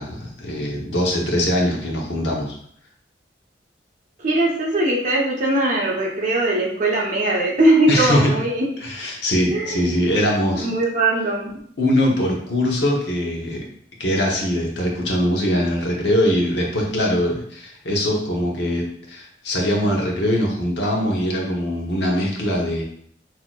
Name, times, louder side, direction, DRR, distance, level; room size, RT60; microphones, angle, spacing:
voice 1, 0.0-2.5 7.9-8.3 8.8-10.7 11.8-13.7 14.0-22.8, left 1 dB, 75° left, -1 dB, 1.1 m, -22 dB
voice 2, 4.2-8.7 9.5-9.8 10.6-11.6, right 1 dB, 45° right, -3 dB, 1.1 m, -20 dB
6.0 x 2.9 x 2.4 m, 0.64 s
head